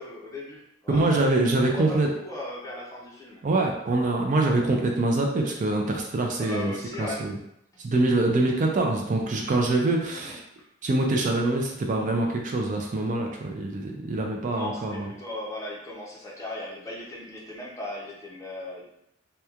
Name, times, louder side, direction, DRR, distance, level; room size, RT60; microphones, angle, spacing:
voice 1, 0.0-3.4 6.4-7.2 10.1-10.4 14.5-18.8, left 1 dB, 15° left, -3 dB, 0.5 m, -37 dB
voice 2, 0.9-2.1 3.4-7.4 7.8-10.4 10.8-15.1, right 2 dB, 40° right, 1 dB, 0.4 m, -24 dB
2.9 x 2.1 x 2.3 m, 0.77 s
head